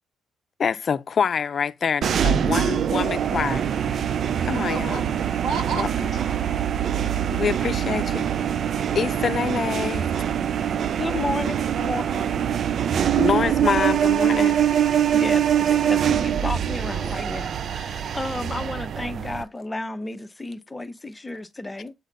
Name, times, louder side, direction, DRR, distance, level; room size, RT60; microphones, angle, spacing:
voice 1, 0.6-3.7 4.4-5.0 5.7-5.9 7.3-8.3 8.9-10.1 13.2-14.6, left 6 dB, 50° left, 0.6 m, -26 dB
sound 1, 2.0-19.4, right 9 dB, 60° right, 0.4 m, -24 dB
voice 2, 4.5-5.8 11.1-11.4 11.7-13.2, right 5 dB, 75° right, 2.1 m, -34 dB
voice 3, 11.0-11.6 11.8-12.0 15.1-21.9, left 2 dB, 15° left, 0.8 m, -32 dB
8.2 x 4.0 x 4.0 m
cardioid pair, 90°, 0 cm